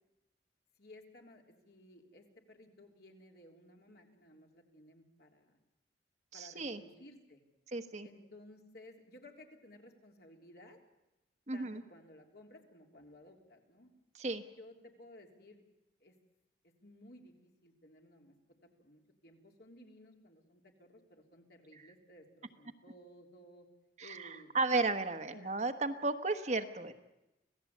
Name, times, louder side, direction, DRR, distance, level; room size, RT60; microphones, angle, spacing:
voice 1, 0.8-5.6 6.3-7.4 8.0-10.8 11.5-13.9 14.6-15.6 16.0-16.1 16.6-18.3 18.8-23.7 24.0-24.6 25.3-25.5, left 1 dB, 60° left, 2 dB, 3.4 m, -57 dB
voice 2, 6.3-6.8 7.7-8.1 11.5-11.8 14.2-14.4 24.0-24.3 24.5-26.9, right 3 dB, 40° right, 8 dB, 1.2 m, -34 dB
26.5 x 17.5 x 8.5 m, 0.96 s
head